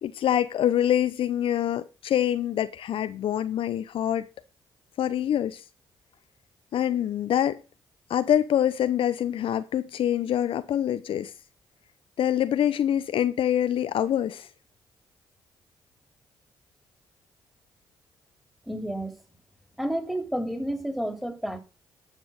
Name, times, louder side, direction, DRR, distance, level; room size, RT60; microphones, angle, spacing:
voice 1, 0.0-4.2 5.0-5.6 6.7-7.6 8.1-11.3 12.2-14.5, left 10 dB, 65° left, 0.7 m, -25 dB
voice 2, 18.7-19.1 19.8-21.6, right 1 dB, ahead, 3.2 m, -30 dB
11.0 x 6.1 x 6.4 m
hypercardioid pair, 45°, 10 cm